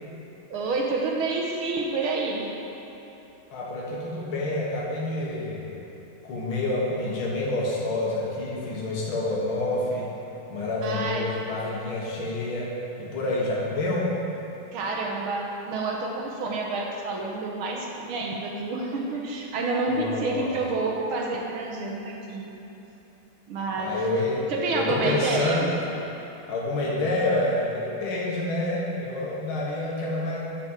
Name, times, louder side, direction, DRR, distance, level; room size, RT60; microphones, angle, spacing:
voice 1, 0.5-2.6 10.8-11.3 14.7-22.5 23.5-24.0 24.5-25.7, right 3 dB, 80° right, 0 dB, 1.8 m, -28 dB
voice 2, 3.5-5.8 6.2-10.1 10.5-12.7 13.0-14.1 19.9-20.5 23.8-24.4 24.7-25.7 26.5-30.4, left 2 dB, 75° left, -5 dB, 2.3 m, -28 dB
8.8 x 5.4 x 7.4 m, 3.0 s
omnidirectional pair, 2.3 m